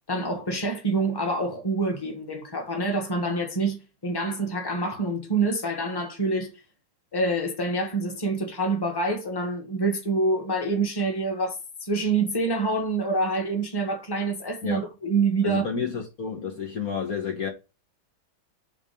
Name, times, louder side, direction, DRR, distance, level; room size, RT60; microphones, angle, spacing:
voice 1, 0.1-6.5 7.1-11.6 11.8-15.7, right 2 dB, 10° left, 1.7 m, -26 dB
voice 2, 15.4-17.5, left 6 dB, 50° left, 1.7 m, -30 dB
8.1 x 3.3 x 5.2 m
omnidirectional pair, 2.1 m